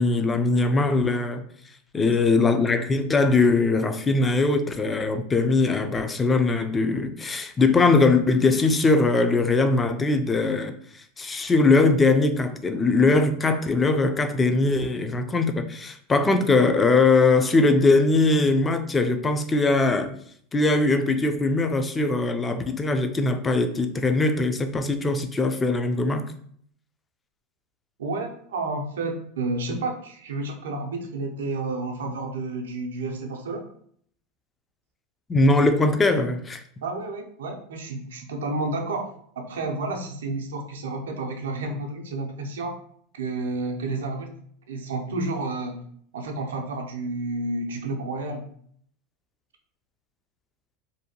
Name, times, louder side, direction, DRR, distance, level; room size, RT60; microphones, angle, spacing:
voice 1, 0.0-1.4 1.9-10.7 11.2-20.1 20.5-26.3 35.3-36.6, left 3 dB, 20° left, 0.3 m, -21 dB
voice 2, 28.0-33.6 36.8-42.8 43.1-44.3 44.7-45.8 46.1-48.5, right 2 dB, 90° right, 0.5 m, -30 dB
2.6 x 2.1 x 2.8 m
supercardioid pair, 115°, 0 cm